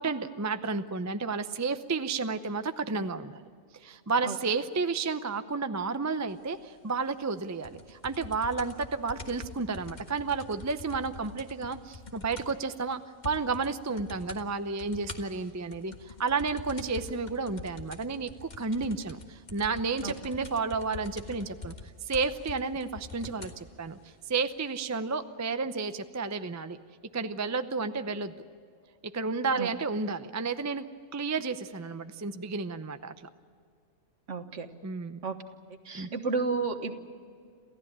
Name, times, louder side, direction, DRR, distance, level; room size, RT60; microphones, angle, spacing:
voice 1, 0.0-3.4 3.8-21.7 22.0-24.0 24.3-26.8 27.1-28.3 29.1-30.8 31.1-33.1 34.8-35.2 35.9-36.1, right 4 dB, 20° right, 10 dB, 0.5 m, -31 dB
sound 1, 7.6-12.7 12.9-13.0 13.2-13.7 14.0-14.4 14.8-23.6 24.4-24.5, left 3 dB, 35° left, 1.6 m, -44 dB
voice 2, 34.3-34.7 35.2-35.3 35.9-37.0, right 4 dB, 60° right, 8 dB, 1.7 m, -31 dB
28.0 x 15.5 x 8.7 m, 2.2 s
omnidirectional pair, 1.4 m